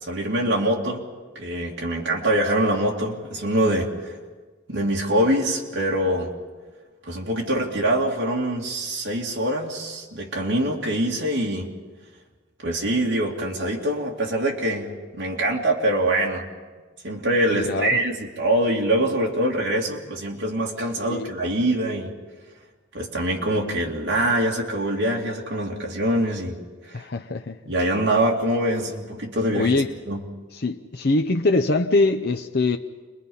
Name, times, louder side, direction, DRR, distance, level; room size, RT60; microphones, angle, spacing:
voice 1, 0.0-1.0 1.3-4.2 4.7-6.3 7.0-11.7 12.6-16.4 17.0-22.1 22.9-26.6 26.9-27.0 27.7-30.2, right 1 dB, 65° right, -2 dB, 2.8 m, -24 dB
voice 2, 17.5-18.0 21.1-21.3 26.9-27.6 29.5-29.9 30.5-32.8, left 2 dB, 50° left, 4 dB, 0.7 m, -23 dB
28.5 x 21.0 x 5.5 m, 1.4 s
head